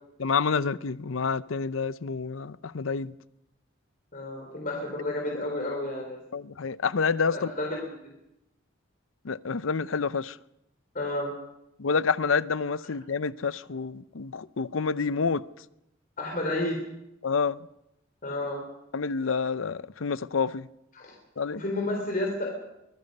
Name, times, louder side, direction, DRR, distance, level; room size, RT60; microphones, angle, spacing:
voice 1, 0.2-3.1 6.3-7.5 9.2-10.4 11.8-15.4 17.2-17.6 18.9-20.7 21.4-21.6, left 5 dB, 85° left, 0.7 m, -28 dB
voice 2, 4.1-6.2 7.3-7.8 8.0-8.1 10.9-11.3 16.2-16.8 18.2-18.6 20.9-21.1 21.5-22.5, left 1 dB, 45° left, 3.8 m, -31 dB
24.0 x 21.0 x 5.4 m
head